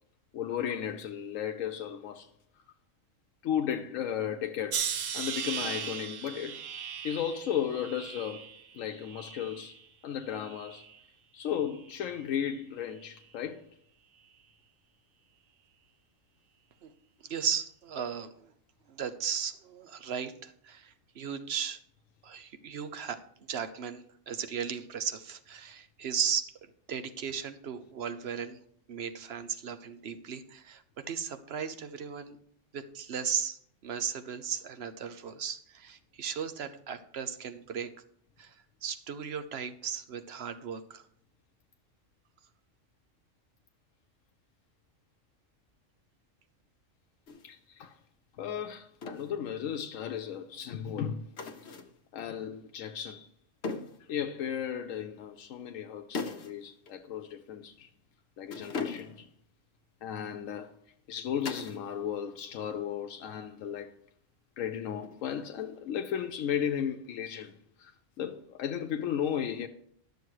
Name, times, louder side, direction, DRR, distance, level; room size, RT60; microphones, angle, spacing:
voice 1, 0.3-2.3 3.4-6.6 7.0-8.4 8.7-10.9 11.3-13.7 47.4-48.0 48.4-51.3 52.1-53.3 54.1-57.9 58.4-59.3 60.0-60.8 61.1-63.9 64.6-67.9 68.2-69.7, left 9 dB, 85° left, 1.0 m, -35 dB
sound 1, 4.7-9.9 10.3-11.0 11.7-12.0, right 8 dB, 75° right, 1.1 m, -38 dB
voice 2, 17.2-18.5 18.9-21.8 22.2-26.5 26.9-28.6 28.9-32.4 32.7-37.9 38.4-38.5 38.8-41.0, right 7 dB, 55° right, 1.0 m, -36 dB
sound 2, 47.3-47.5 49.0-49.3 51.4-52.0 53.6-54.1 56.1-56.6 56.9-57.0 58.5-59.3 61.4-61.9 62.2-62.7 65.0-65.5, left 4 dB, 60° left, 1.1 m, -39 dB
11.5 x 6.9 x 4.7 m
omnidirectional pair, 1.3 m